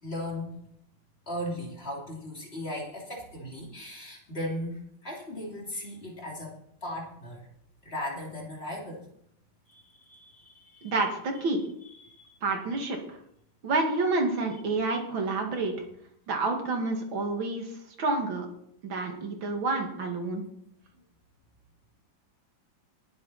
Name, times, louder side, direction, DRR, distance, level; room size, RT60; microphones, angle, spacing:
voice 1, 0.0-0.6 1.3-6.5 6.8-7.5 7.8-9.0 9.7-10.9 11.8-12.4, left 1 dB, 30° left, -2 dB, 3.0 m, -37 dB
voice 2, 10.8-11.6 12.4-13.2 13.6-15.7 16.3-17.7 18.0-18.5 18.8-20.4, right 3 dB, 80° right, 2 dB, 2.8 m, -28 dB
20.5 x 7.7 x 4.2 m, 0.71 s
omnidirectional pair, 2.1 m